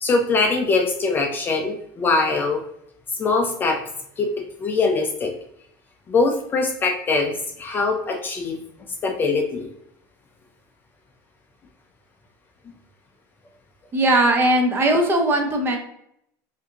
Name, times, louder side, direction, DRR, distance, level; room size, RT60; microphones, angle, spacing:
voice 1, 0.0-2.6 3.2-3.8 4.2-4.3 4.6-5.3 6.1-8.6 9.0-9.7, left 3 dB, 20° left, 2 dB, 0.4 m, -22 dB
voice 2, 13.9-15.8, right 1 dB, 25° right, 4 dB, 0.6 m, -19 dB
4.7 x 2.6 x 2.8 m, 0.74 s
cardioid pair, 150°, 10 cm